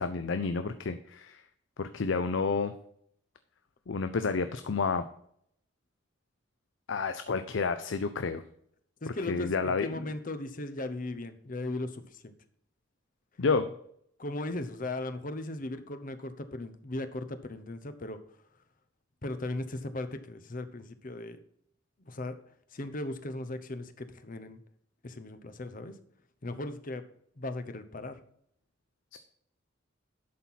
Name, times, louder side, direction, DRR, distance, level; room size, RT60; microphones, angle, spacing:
voice 1, 0.0-1.4 1.8-2.7 3.9-5.0 6.9-8.4 9.1-10.0 13.4-13.7 29.1-29.2, left 4 dB, 70° left, 10 dB, 0.5 m, -30 dB
voice 2, 9.0-12.3 14.2-18.2 19.2-21.4 22.1-22.4 22.7-24.6 25.0-25.9 26.4-27.0 27.4-28.2, left 2 dB, 45° left, 10 dB, 0.8 m, -37 dB
11.0 x 4.3 x 5.7 m, 0.68 s
head